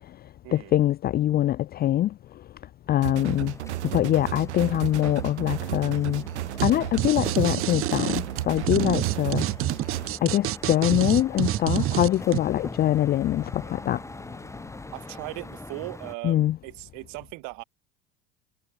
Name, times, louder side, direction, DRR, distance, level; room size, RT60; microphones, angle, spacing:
voice 1, 0.5-2.1 2.9-3.5 3.9-6.2 6.6-9.5 10.2-14.0 16.2-16.6, left 13 dB, 25° left, 0.5 m, -23 dB
sound 1, 3.0-10.1, right 16 dB, 70° right, 1.6 m, -33 dB
sound 2, 3.1-16.1, left 2 dB, 10° left, 2.7 m, -43 dB
sound 3, 6.6-6.7 7.0-12.4, right 15 dB, 35° right, 1.0 m, -27 dB
voice 2, 14.9-17.6, right 28 dB, 55° right, 1.8 m, -38 dB
figure-of-eight pair, 75°, 36 cm